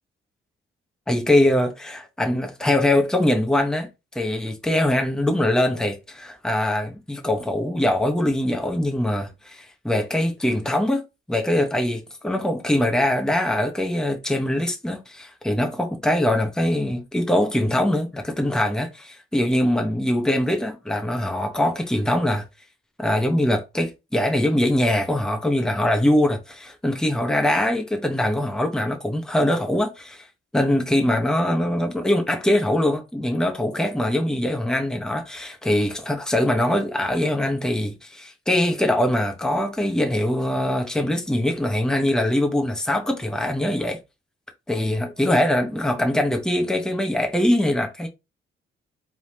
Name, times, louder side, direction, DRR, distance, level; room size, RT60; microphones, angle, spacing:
voice 1, 1.1-3.9 4.1-11.0 11.3-22.4 23.0-30.3 30.5-44.0 44.7-48.1, left 1 dB, 5° left, 1.1 m, -22 dB
4.5 x 3.6 x 2.9 m
cardioid pair, 90°, 20 cm